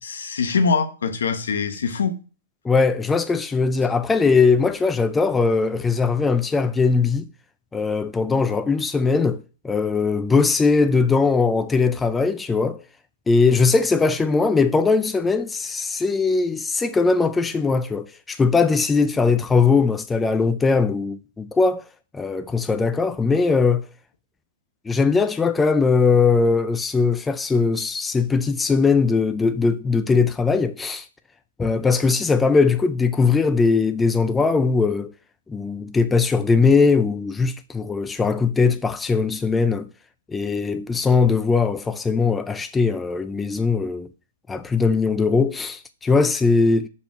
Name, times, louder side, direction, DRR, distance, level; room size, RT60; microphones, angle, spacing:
voice 1, 0.0-2.2, left 5 dB, 85° left, 1.1 m, -23 dB
voice 2, 2.6-7.3 7.7-12.8 13.3-21.8 22.1-23.9 24.9-31.1 31.6-35.1 35.5-39.9 40.3-44.1 44.5-46.9, left 4 dB, 10° left, 0.3 m, -20 dB
5.4 x 4.4 x 6.1 m
hypercardioid pair, 150°, 0 cm